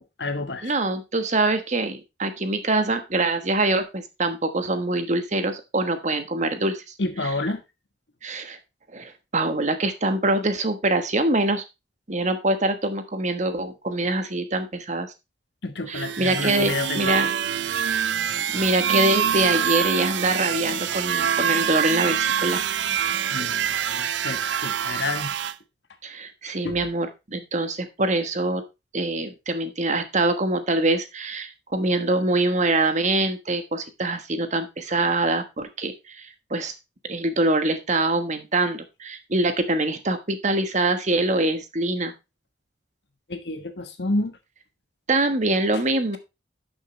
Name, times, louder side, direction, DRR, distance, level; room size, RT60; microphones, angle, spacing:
voice 1, 0.0-0.7 7.0-7.6 15.6-17.3 23.3-25.3 26.6-26.8 43.3-44.4, left 2 dB, 75° left, 1.4 m, -29 dB
voice 2, 0.6-6.8 8.2-8.6 8.9-11.6 12.1-15.1 15.9-17.3 18.5-22.6 23.4-23.5 26.0-28.6 28.9-36.7 37.1-42.1 45.1-46.2, right 2 dB, 40° right, 1.3 m, -24 dB
sound 1, 15.9-25.5, right 8 dB, 90° right, 0.5 m, -25 dB
11.5 x 6.4 x 3.2 m
head